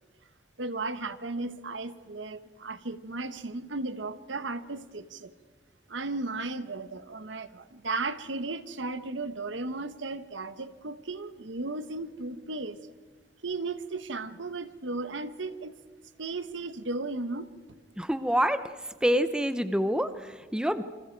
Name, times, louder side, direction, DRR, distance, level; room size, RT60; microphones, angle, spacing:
voice 1, 0.6-5.3 5.9-12.9 13.4-15.7 16.2-17.5, right 3 dB, 75° right, 12 dB, 1.1 m, -35 dB
voice 2, 18.0-18.6 19.0-20.8, equal, 5° right, 11 dB, 0.7 m, -26 dB
28.5 x 26.0 x 4.6 m, 1.5 s
head